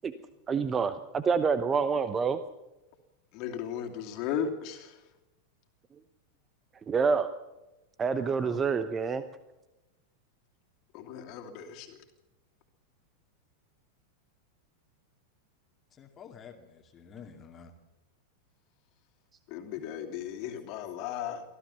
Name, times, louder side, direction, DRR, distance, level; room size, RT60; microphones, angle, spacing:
voice 1, 0.5-2.4 6.9-7.3 8.0-9.2, right 5 dB, 20° right, 12 dB, 1.0 m, -27 dB
voice 2, 3.3-5.0 10.9-12.0 19.5-21.4, left 8 dB, 40° left, 4 dB, 2.7 m, -36 dB
voice 3, 8.1-8.6 16.0-17.7, left 6 dB, 25° left, 5 dB, 2.3 m, -49 dB
24.5 x 15.0 x 7.0 m, 1.0 s
figure-of-eight pair, 90°, 0 cm